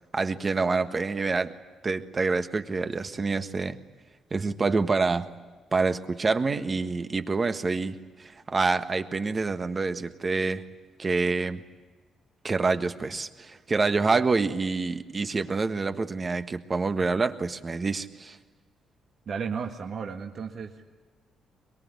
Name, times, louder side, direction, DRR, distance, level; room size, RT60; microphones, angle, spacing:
voice 1, 0.1-1.5 1.8-3.8 4.3-5.3 5.7-10.6 11.0-11.6 12.4-18.4, right 4 dB, 30° right, 8 dB, 1.5 m, -27 dB
voice 2, 19.3-20.9, right 6 dB, 55° right, 2 dB, 1.7 m, -34 dB
23.0 x 22.0 x 9.7 m, 1.4 s
cardioid pair, 90°, 0 cm